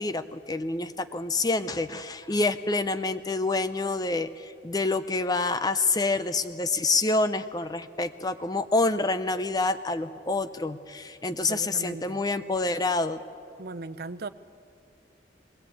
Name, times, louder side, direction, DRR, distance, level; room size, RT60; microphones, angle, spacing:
voice 1, 0.0-13.2, left 3 dB, 20° left, 11 dB, 0.6 m, -27 dB
voice 2, 11.3-12.2 13.6-14.3, right 3 dB, 55° right, 13 dB, 0.6 m, -38 dB
20.5 x 19.0 x 8.6 m, 2.4 s
head